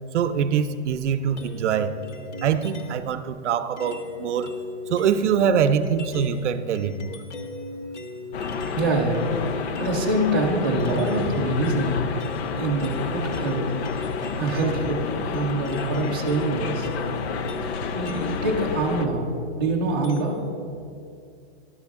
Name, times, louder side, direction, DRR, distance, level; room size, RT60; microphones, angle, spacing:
voice 1, 0.1-1.9 2.4-4.5 4.9-7.2, right 7 dB, 80° right, 11 dB, 0.5 m, -24 dB
sound 1, 1.4-3.1 3.8-8.8 9.1-20.6, left 4 dB, 90° left, 1.0 m, -37 dB
sound 2, 8.3-19.1, left 5 dB, 65° left, 0.5 m, -30 dB
voice 2, 8.7-9.3 9.5-12.0 12.6-14.1 14.4-16.9 17.9-19.3 19.6-20.4, right 2 dB, 20° right, -4 dB, 0.4 m, -25 dB
11.0 x 4.9 x 3.5 m, 2.4 s
hypercardioid pair, 180°, 35 cm